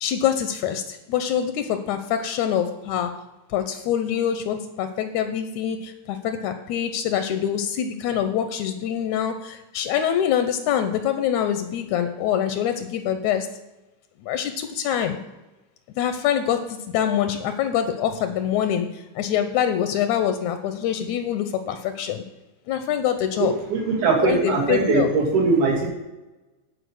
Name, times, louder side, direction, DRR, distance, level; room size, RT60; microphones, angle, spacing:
voice 1, 0.0-3.1 3.5-13.5 14.3-15.2 16.0-18.9 19.2-22.2 22.7-23.5 24.2-25.1, left 9 dB, 80° left, 8 dB, 1.9 m, -25 dB
voice 2, 23.4-25.9, right 4 dB, 80° right, -3 dB, 3.6 m, -21 dB
10.0 x 4.9 x 6.3 m, 1.1 s
omnidirectional pair, 3.4 m